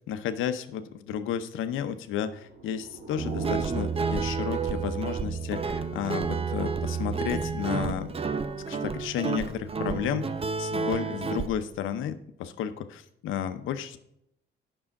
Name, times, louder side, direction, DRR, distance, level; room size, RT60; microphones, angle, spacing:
voice 1, 0.1-8.1 8.7-10.3 10.6-14.0, left 9 dB, 85° left, 10 dB, 0.8 m, -32 dB
sound 1, 2.2-4.9, right 3 dB, 55° right, 2.0 m, -41 dB
Guitar, 3.2-11.5, right 5 dB, 30° right, 0.7 m, -30 dB
8.9 x 6.3 x 4.7 m, 0.77 s
cardioid pair, 90°, 20 cm